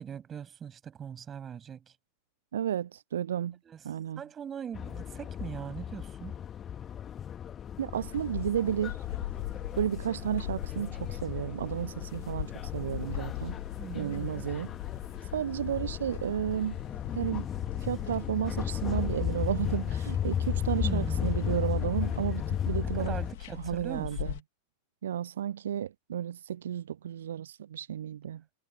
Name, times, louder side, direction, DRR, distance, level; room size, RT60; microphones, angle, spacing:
voice 1, 0.0-1.9 3.6-3.8 4.2-6.4 13.8-14.5 20.8-21.3 23.0-24.4, right 8 dB, 25° right, 7.1 m, -41 dB
voice 2, 2.5-3.6 3.8-4.2 7.8-9.0 9.8-13.6 13.9-14.7 15.2-16.8 17.1-17.5 17.8-23.1 23.6-24.3 25.0-28.4, right 10 dB, 65° right, 0.6 m, -32 dB
sound 1, 4.7-23.3, left 9 dB, 25° left, 1.9 m, -35 dB
sound 2, 7.9-24.4, left 16 dB, 55° left, 3.1 m, -40 dB
figure-of-eight pair, 90°, 0 cm